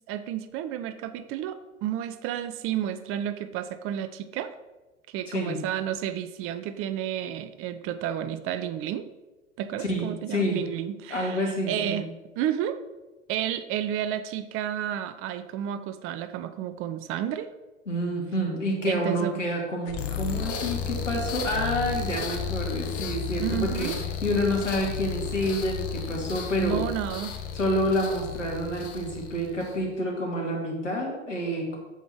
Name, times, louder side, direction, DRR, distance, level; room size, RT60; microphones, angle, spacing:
voice 1, 0.1-4.5 5.1-9.1 9.6-12.0 12.4-12.8 13.3-17.5 18.8-19.4 23.4-24.0 26.6-27.3, right 10 dB, 35° right, 11 dB, 0.6 m, -31 dB
voice 2, 5.3-5.6 9.8-10.6 11.1-12.0 17.9-23.9 24.2-26.8 27.5-31.8, equal, 80° left, 0 dB, 2.4 m, -28 dB
sound 1, 19.9-29.9, left 6 dB, 40° left, 1.2 m, -33 dB
8.1 x 7.2 x 4.6 m, 1.1 s
figure-of-eight pair, 80°, 37 cm